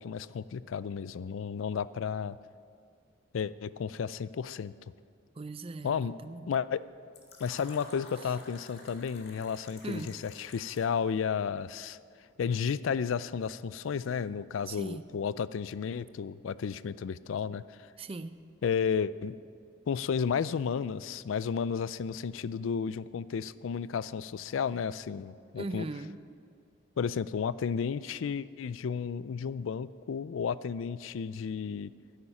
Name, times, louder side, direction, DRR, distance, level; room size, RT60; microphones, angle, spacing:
voice 1, 0.0-2.4 3.3-4.7 5.8-6.1 6.5-6.8 7.4-12.0 12.4-17.6 18.6-19.4 19.9-25.9 27.0-31.9, left 6 dB, 80° left, 17 dB, 0.4 m, -32 dB
voice 2, 5.4-6.5 9.8-10.2 14.7-15.1 18.0-18.4 25.6-26.2, right 2 dB, 30° right, 12 dB, 0.5 m, -39 dB
Fill (with liquid), 7.1-11.0, left 3 dB, 55° left, 2.0 m, -51 dB
10.5 x 8.2 x 9.9 m, 2.3 s
head